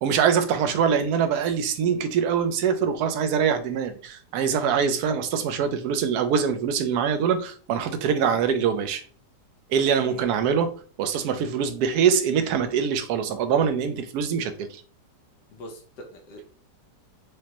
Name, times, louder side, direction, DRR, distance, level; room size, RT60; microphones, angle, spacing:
voice 1, 0.0-9.0 9.7-14.8, right 7 dB, 70° right, 1.0 m, -24 dB
voice 2, 15.5-16.4, equal, 75° left, 1.4 m, -43 dB
5.0 x 2.1 x 2.9 m
omnidirectional pair, 1.9 m